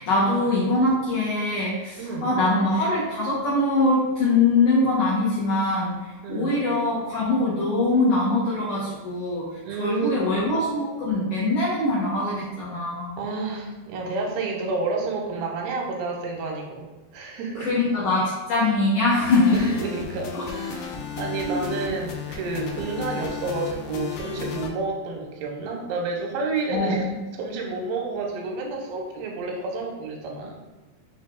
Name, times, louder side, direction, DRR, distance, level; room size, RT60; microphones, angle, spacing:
voice 1, 0.0-6.0 6.3-9.4 9.8-13.2 17.6-19.7 20.3-20.4 21.4-21.6 26.7-27.1, left 2 dB, 70° left, -8 dB, 1.9 m, -23 dB
voice 2, 2.0-2.3 6.2-6.6 9.6-10.3 13.2-17.7 19.5-27.1 27.3-30.6, right 3 dB, 90° right, 0 dB, 2.5 m, -30 dB
sound 1, 19.2-24.7, left 6 dB, 85° left, 1.9 m, -34 dB
6.0 x 3.2 x 2.3 m, 1.2 s
omnidirectional pair, 4.4 m